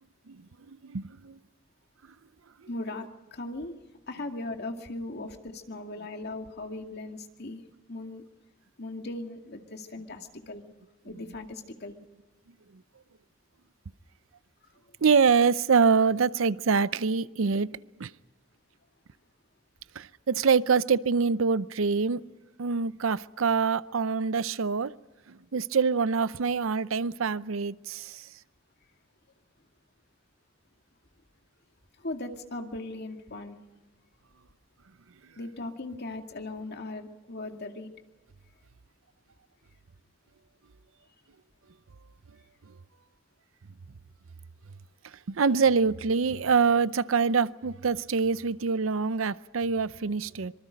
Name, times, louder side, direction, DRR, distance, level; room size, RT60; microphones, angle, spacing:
voice 1, 0.8-1.4 15.0-18.1 20.0-22.2 22.6-24.9 25.3-28.2 45.3-50.5, right 5 dB, 80° right, 0.6 m, -25 dB
voice 2, 2.7-3.7 4.1-7.6 7.9-8.2 8.8-10.6 11.0-11.9 14.9-15.0 32.0-33.6 35.4-37.9, left 2 dB, 55° left, 2.2 m, -38 dB
25.5 x 24.0 x 5.2 m
head